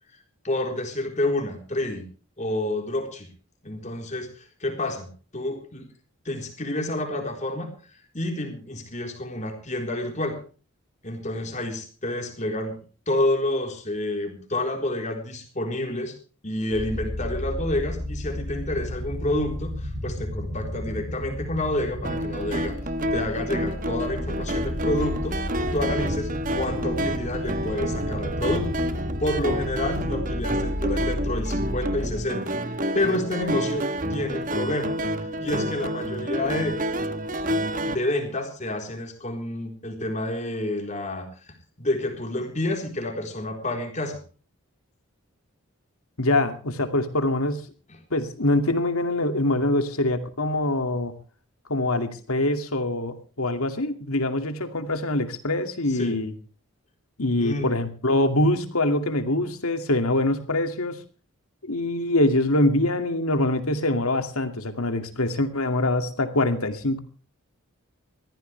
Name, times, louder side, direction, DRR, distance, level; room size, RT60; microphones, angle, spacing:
voice 1, 0.4-2.0 2.4-3.3 3.6-5.1 5.3-5.9 6.2-7.7 8.1-10.4 11.0-12.8 13.1-16.1 16.4-22.8 23.1-34.9 35.4-37.1 37.9-44.2 47.9-48.0 55.9-56.2 57.4-57.7, left 1 dB, 35° left, 3 dB, 4.0 m, -29 dB
sound 1, 16.7-32.2, left 1 dB, 70° right, 6.2 m, -33 dB
sound 2, 22.0-38.0, equal, 40° right, 1.2 m, -29 dB
voice 2, 46.2-47.6 48.1-51.1 51.7-56.3 57.2-61.0 61.6-67.0, left 1 dB, 85° left, 8 dB, 2.4 m, -24 dB
21.5 x 15.0 x 3.4 m, 0.37 s
head